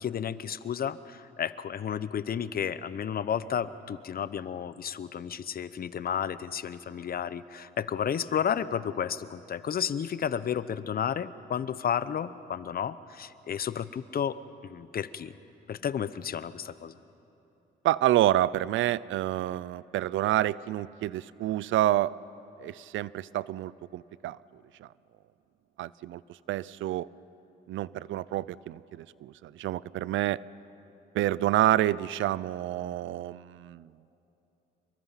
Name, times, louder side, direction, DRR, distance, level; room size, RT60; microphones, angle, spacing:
voice 1, 0.0-15.3 15.7-17.0, left 8 dB, 50° left, 15 dB, 0.8 m, -32 dB
voice 2, 17.8-22.1 22.6-24.4 24.8-24.9 25.8-27.1 27.7-30.4 31.1-33.9, right 14 dB, 80° right, 20 dB, 0.5 m, -28 dB
27.0 x 23.5 x 5.8 m, 2.9 s
cardioid pair, 90°, 20 cm